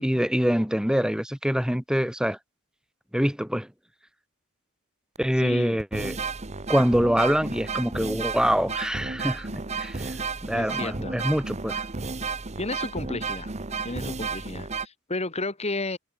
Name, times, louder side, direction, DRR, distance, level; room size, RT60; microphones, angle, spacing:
voice 1, 0.0-2.4 3.1-3.7 5.2-6.2 6.7-10.1 10.4-11.8, equal, 5° right, 2.4 m, -25 dB
sound 1, 5.2-5.3 5.8-14.9, right 4 dB, 35° right, 1.2 m, -32 dB
voice 2, 5.4-5.8 10.5-11.1 12.6-13.5 13.8-16.0, left 2 dB, 30° left, 3.4 m, -32 dB
head